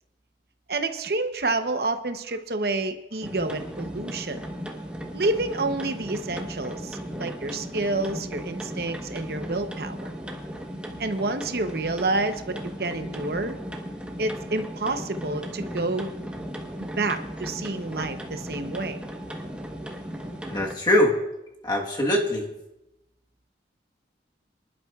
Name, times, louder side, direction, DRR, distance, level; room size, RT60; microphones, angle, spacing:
voice 1, 0.7-4.4 5.1-10.1 11.0-13.6 14.2-16.1 16.8-19.0, right 2 dB, 60° right, 8 dB, 0.8 m, -29 dB
sound 1, 3.2-20.8, equal, 5° right, 1.1 m, -36 dB
voice 2, 20.5-21.1 21.6-22.4, left 1 dB, 25° left, -1 dB, 1.3 m, -22 dB
24.5 x 11.5 x 2.4 m, 0.92 s
head